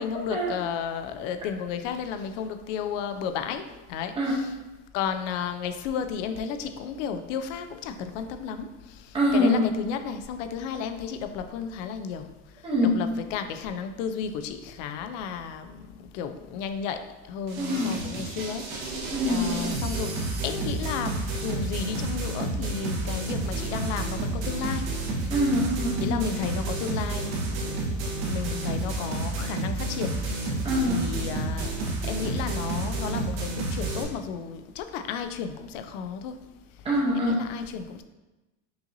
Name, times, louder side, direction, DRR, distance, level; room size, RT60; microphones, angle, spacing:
voice 1, 0.0-4.5 4.9-12.3 12.8-15.9 16.1-17.0 17.3-20.1 20.4-24.9 26.0-30.6 30.9-31.7 32.1-36.4 37.1-38.0, left 7 dB, 60° left, 9 dB, 0.5 m, -33 dB
voice 2, 9.1-9.7 12.6-13.0 17.6-17.9 19.1-19.5 25.3-26.2 30.6-31.1 36.8-37.4, equal, 15° right, -4 dB, 0.7 m, -24 dB
sound 1, 17.5-34.0, right 2 dB, 65° right, 1.2 m, -30 dB
5.6 x 2.7 x 2.6 m, 1.1 s
supercardioid pair, 160°, 43 cm